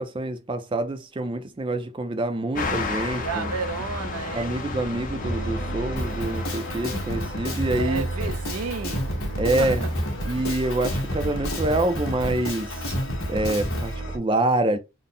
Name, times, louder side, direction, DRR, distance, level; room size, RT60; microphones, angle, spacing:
voice 1, 0.0-3.5 4.3-8.1 9.4-9.8 10.2-12.9 13.3-14.8, right 2 dB, 25° right, 0.4 m, -26 dB
sound 1, 2.5-8.0, left 3 dB, 40° left, 0.6 m, -33 dB
voice 2, 3.2-4.5 7.7-9.1 9.5-9.9, right 5 dB, 85° right, 0.5 m, -32 dB
sound 2, 5.2-14.2, right 1 dB, 55° left, 1.3 m, -33 dB
Drum kit, 6.0-13.9, equal, 80° left, 1.4 m, -30 dB
3.7 x 2.0 x 3.9 m
head